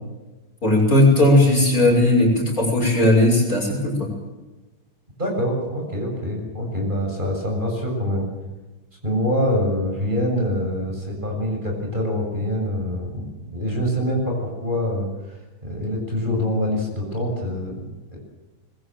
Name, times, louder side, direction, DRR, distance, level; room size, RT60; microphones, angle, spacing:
voice 1, 0.6-4.1, left 1 dB, 40° left, 0 dB, 6.7 m, -17 dB
voice 2, 5.2-8.3 9.0-15.4 15.6-18.2, equal, 25° right, 0 dB, 7.2 m, -25 dB
25.0 x 22.0 x 7.8 m, 1.1 s
omnidirectional pair, 2.2 m